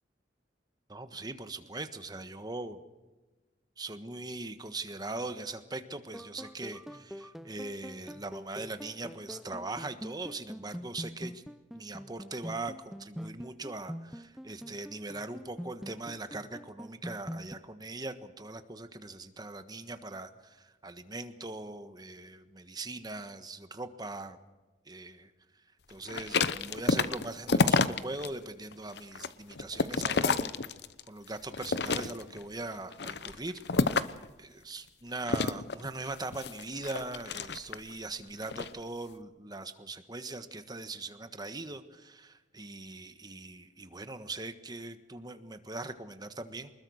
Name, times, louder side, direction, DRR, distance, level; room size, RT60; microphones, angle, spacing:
voice 1, 0.9-2.8 3.8-11.4 11.7-24.4 24.9-25.3 25.9-30.6 31.1-33.6 34.1-46.7, right 2 dB, 25° right, 9 dB, 1.4 m, -41 dB
sound 1, 6.1-17.6, equal, ahead, 0.6 m, -44 dB
sound 2, 26.1-28.3 28.7-31.1 31.5-32.4 32.9-34.3 35.3-37.9 38.4-38.7, left 4 dB, 65° left, 0.9 m, -29 dB
24.5 x 21.0 x 6.5 m, 1.1 s
head